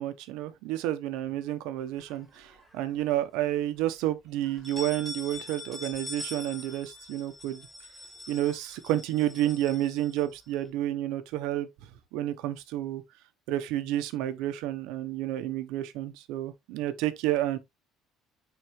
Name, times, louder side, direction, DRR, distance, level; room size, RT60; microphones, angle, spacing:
voice 1, 0.0-7.7 8.3-11.7 12.1-13.0 13.5-17.6, right 13 dB, 85° right, 1.0 m, -30 dB
sound 1, 2.0-2.9 3.3-3.4 3.8-3.9 4.4-10.7, left 2 dB, ahead, 2.7 m, -44 dB
9.3 x 4.0 x 3.2 m
cardioid pair, 150°, 0 cm